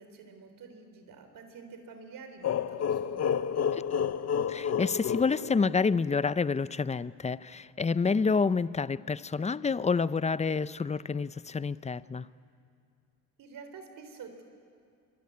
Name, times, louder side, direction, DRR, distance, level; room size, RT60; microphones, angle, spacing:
voice 1, 0.0-3.4 13.4-14.4, right 5 dB, 70° right, 7 dB, 3.7 m, -48 dB
sound 1, 2.4-6.1, left 8 dB, 50° left, 0.8 m, -30 dB
voice 2, 4.5-12.3, left 5 dB, 20° left, 17 dB, 0.6 m, -28 dB
24.5 x 24.0 x 9.5 m, 2.3 s
cardioid pair, 90°, 34 cm